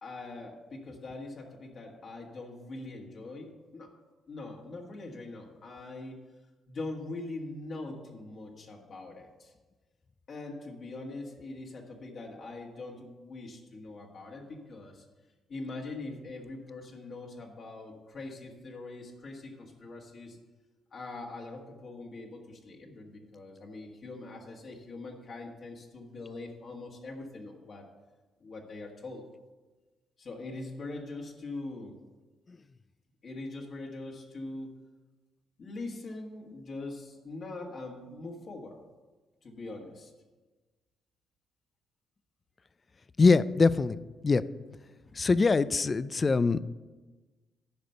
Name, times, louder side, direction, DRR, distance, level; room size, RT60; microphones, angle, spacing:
voice 1, 0.0-3.9 4.3-6.2 6.7-9.5 10.3-15.0 15.5-20.4 20.9-27.8 28.4-29.2 30.2-32.0 33.2-34.7 35.6-38.8 39.4-40.1, left 2 dB, 50° left, -1 dB, 1.7 m, -42 dB
voice 2, 43.2-44.0 44.2-44.4 45.1-46.6, left 4 dB, 30° left, 16 dB, 0.4 m, -23 dB
10.5 x 5.1 x 6.7 m, 1.3 s
cardioid pair, 90°, 0 cm